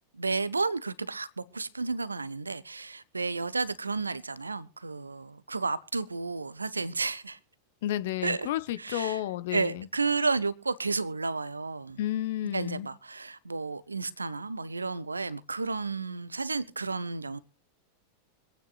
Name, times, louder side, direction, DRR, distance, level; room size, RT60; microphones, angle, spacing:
voice 1, 0.1-7.4 8.2-8.5 8.8-9.2 9.5-12.0 12.5-17.4, right 4 dB, 80° right, 0.6 m, -32 dB
voice 2, 7.8-9.9 12.0-12.9, left 13 dB, 55° left, 0.8 m, -31 dB
25.0 x 9.1 x 2.4 m
figure-of-eight pair, 90°, 0 cm